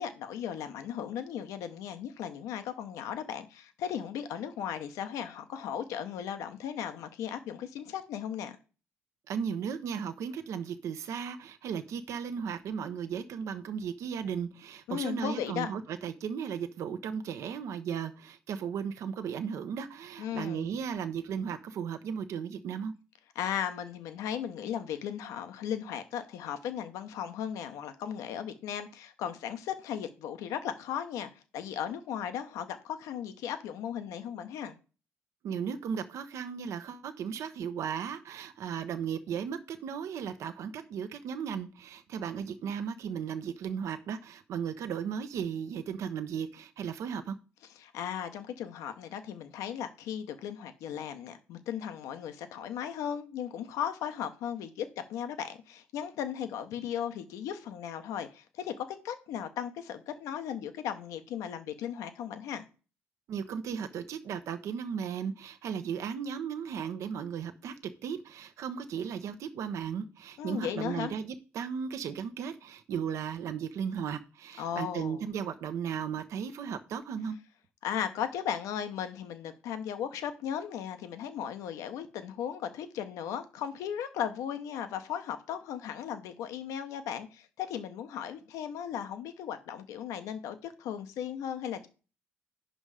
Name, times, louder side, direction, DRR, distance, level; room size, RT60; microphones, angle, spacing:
voice 1, 0.0-8.6 14.9-15.7 20.2-20.7 23.3-34.7 47.8-62.6 70.4-71.1 74.6-75.2 77.8-91.9, left 9 dB, 80° left, 0.9 m, -36 dB
voice 2, 9.3-22.9 35.4-47.4 63.3-67.8 68.0-77.4, right 7 dB, 70° right, 0.8 m, -36 dB
7.7 x 5.5 x 4.9 m
supercardioid pair, 75°, 5 cm